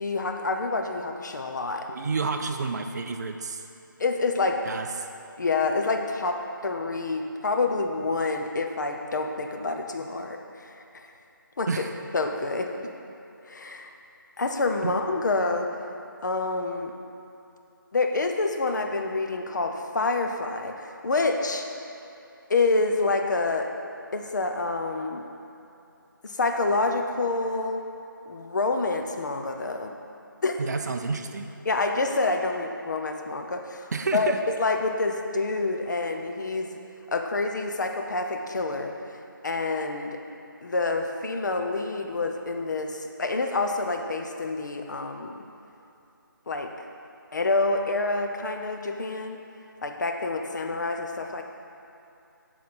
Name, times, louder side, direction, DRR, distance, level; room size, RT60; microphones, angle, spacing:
voice 1, 0.0-1.9 4.0-4.6 5.4-11.1 11.6-11.9 12.1-12.7 13.5-13.9 14.4-15.9 16.2-16.9 17.9-21.7 22.5-23.7 24.1-25.2 26.2-27.8 28.3-29.9 30.4-30.6 31.6-36.8 37.1-38.9 39.4-40.2 40.6-45.4 46.5-46.7 47.3-49.4 49.8-51.4, left 3 dB, 55° left, 4 dB, 0.7 m, -27 dB
voice 2, 1.9-3.6 4.7-4.9 11.7-11.9 14.8-14.9 30.6-31.5 33.9-34.4, right 4 dB, 50° right, 5 dB, 0.4 m, -29 dB
7.7 x 4.1 x 5.9 m, 2.8 s
figure-of-eight pair, 165°, 12 cm